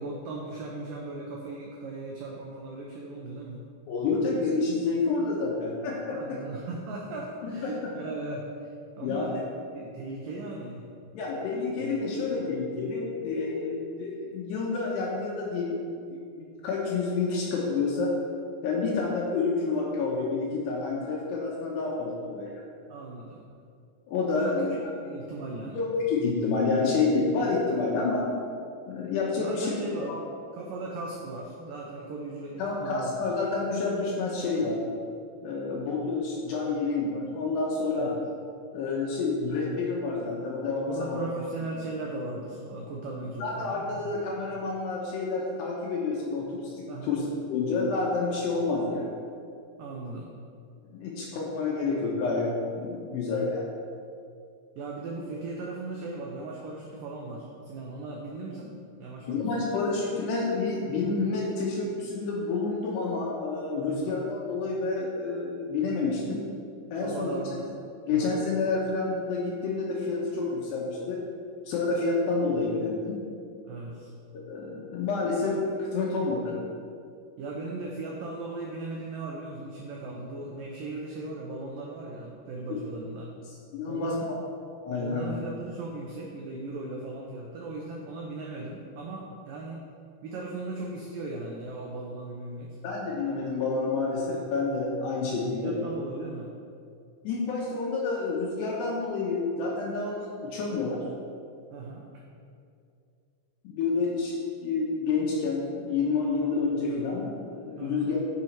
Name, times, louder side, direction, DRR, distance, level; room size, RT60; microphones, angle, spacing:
voice 1, 0.0-3.6 6.1-9.5 9.7-10.9 11.8-11.9 22.9-23.4 24.4-24.7 25.0-25.8 29.4-30.2 30.5-33.3 34.6-34.7 38.0-38.2 40.9-43.8 46.9-47.2 49.8-50.3 53.0-53.1 54.8-59.7 63.9-64.2 67.0-67.7 68.1-68.3 73.7-74.1 77.4-83.3 83.9-84.3 85.0-89.9 90.2-92.8 95.6-96.5 101.7-102.0 107.8-108.1, right 2 dB, 90° right, -2 dB, 1.9 m, -37 dB
voice 2, 3.9-6.4 7.4-7.7 9.0-9.4 11.1-15.8 16.1-18.1 18.6-22.6 24.1-24.7 25.8-28.3 28.9-30.2 32.6-34.8 35.4-38.1 38.7-41.3 43.4-47.2 47.5-49.0 50.9-53.6 59.3-66.4 66.9-67.3 68.1-71.2 71.7-73.2 74.3-76.5 83.7-84.1 84.8-85.4 92.8-95.7 97.2-101.0 103.6-104.3 104.6-108.2, left 4 dB, 75° left, -4 dB, 3.1 m, -29 dB
10.0 x 6.1 x 4.6 m, 2.4 s
omnidirectional pair, 5.1 m